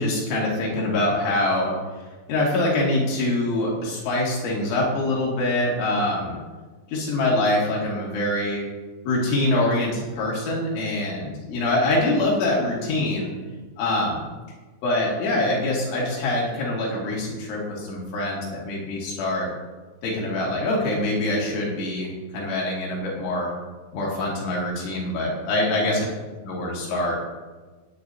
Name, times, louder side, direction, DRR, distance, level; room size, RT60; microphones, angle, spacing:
voice 1, 0.0-1.8 2.3-6.4 6.9-8.7 9.1-13.4 13.8-14.3 14.8-19.5 20.0-23.5 23.9-26.0 26.5-27.2, left 1 dB, 70° left, -4 dB, 4.5 m, -24 dB
17.0 x 10.0 x 2.7 m, 1.3 s
omnidirectional pair, 5.7 m